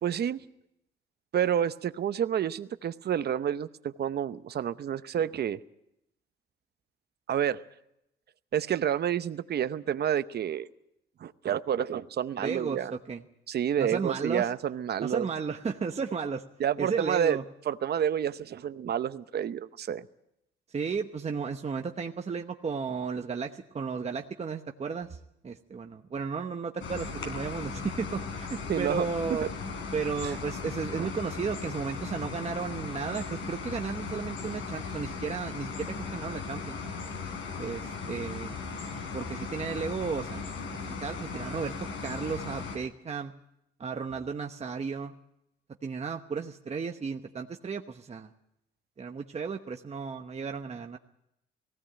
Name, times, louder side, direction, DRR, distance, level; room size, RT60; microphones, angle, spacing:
voice 1, 0.0-0.4 1.3-5.6 7.3-7.6 8.5-10.7 11.2-12.9 13.5-15.3 16.6-17.4 17.7-20.0 28.7-29.1 30.2-30.3 31.0-31.1, right 9 dB, 55° right, 12 dB, 0.9 m, -29 dB
voice 2, 12.4-13.2 13.8-14.5 15.0-16.4 16.8-17.4 20.7-25.2 25.4-29.5 29.9-36.8 37.6-38.5 39.1-41.7 42.0-43.3 43.8-45.1 45.8-48.3 49.0-51.0, right 5 dB, 35° right, 4 dB, 1.1 m, -34 dB
sound 1, 26.8-42.8, left 5 dB, 75° left, 4.3 m, -37 dB
18.5 x 16.5 x 8.9 m, 0.82 s
cardioid pair, 90°, 20 cm